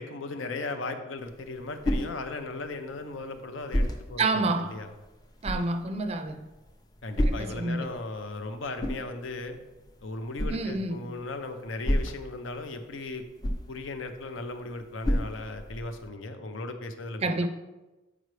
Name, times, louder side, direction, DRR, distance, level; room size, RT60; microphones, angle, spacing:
voice 1, 0.0-4.9 7.0-9.6 10.0-13.2 13.7-17.5, left 2 dB, 85° left, 7 dB, 0.7 m, -37 dB
sound 1, 1.2-16.1, equal, 20° left, 0.5 m, -34 dB
voice 2, 4.2-4.8 5.4-6.5 7.2-7.9 10.5-11.1 17.2-17.5, right 3 dB, 30° right, 8 dB, 0.4 m, -29 dB
7.9 x 4.9 x 3.2 m, 1.1 s
head